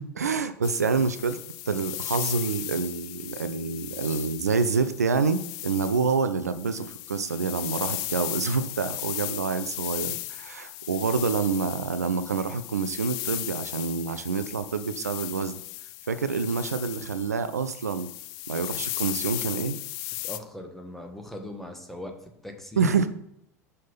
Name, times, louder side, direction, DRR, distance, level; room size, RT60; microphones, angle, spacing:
voice 1, 0.0-1.4 1.7-15.5 16.1-18.1 18.5-19.8 22.8-23.1, right 5 dB, 80° right, 11 dB, 0.4 m, -27 dB
sound 1, 0.6-20.4, left 17 dB, 50° left, 0.5 m, -36 dB
voice 2, 20.2-22.2 22.4-22.9, left 1 dB, 5° left, 3 dB, 1.4 m, -39 dB
5.5 x 5.2 x 5.6 m, 0.75 s
figure-of-eight pair, 75°, 9 cm